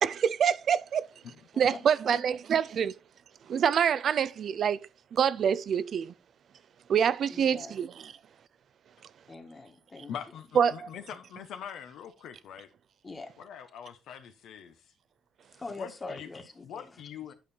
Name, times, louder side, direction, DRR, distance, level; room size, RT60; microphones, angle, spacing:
voice 1, 0.0-1.1 1.6-3.0 3.5-6.1 6.9-8.1 10.6-10.9, right 8 dB, 60° right, 0.4 m, -26 dB
voice 2, 1.5-2.2 7.3-7.8 9.3-10.1 13.0-13.3 15.6-17.0, left 3 dB, 30° left, 1.8 m, -43 dB
voice 3, 10.1-12.7 13.4-14.7 15.8-16.3 16.6-17.3, left 8 dB, 80° left, 1.0 m, -43 dB
9.2 x 5.4 x 4.3 m
cardioid pair, 90°, 0 cm